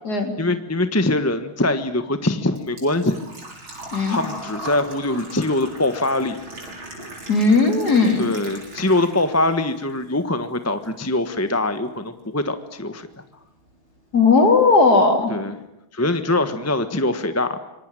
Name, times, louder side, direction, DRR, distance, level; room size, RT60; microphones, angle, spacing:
voice 1, 0.4-3.2 4.1-6.4 8.2-13.1 15.3-15.5 15.9-17.6, left 2 dB, 10° left, 9 dB, 1.1 m, -23 dB
Engine / Trickle dribble / Fill (with liquid), 1.6-9.5 9.9-10.9 11.1-11.2 13.2-13.3 13.4-13.8 14.1-14.2 14.5-14.6, right 1 dB, 75° right, 7.1 m, -38 dB
voice 2, 7.3-8.3 14.1-15.3, left 3 dB, 50° left, 5 dB, 4.0 m, -16 dB
26.0 x 23.5 x 9.2 m, 0.87 s
omnidirectional pair, 2.2 m